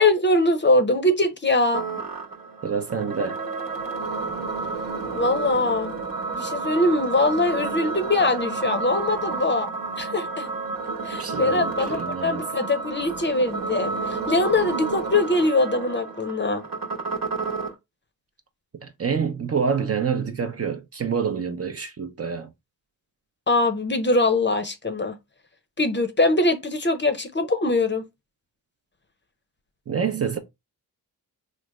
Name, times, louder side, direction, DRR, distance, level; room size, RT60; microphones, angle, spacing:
voice 1, 0.0-1.8 5.1-5.9 6.3-9.7 10.0-10.5 11.0-16.6 23.5-25.2 25.8-28.0, left 2 dB, 30° left, 0.6 m, -22 dB
sound 1, 1.7-17.7, right 4 dB, 55° right, 0.9 m, -30 dB
voice 2, 2.6-3.4 11.2-12.4 18.8-22.5 29.9-30.4, right 6 dB, 40° right, 0.6 m, -27 dB
3.2 x 2.1 x 3.4 m
cardioid pair, 50°, 40 cm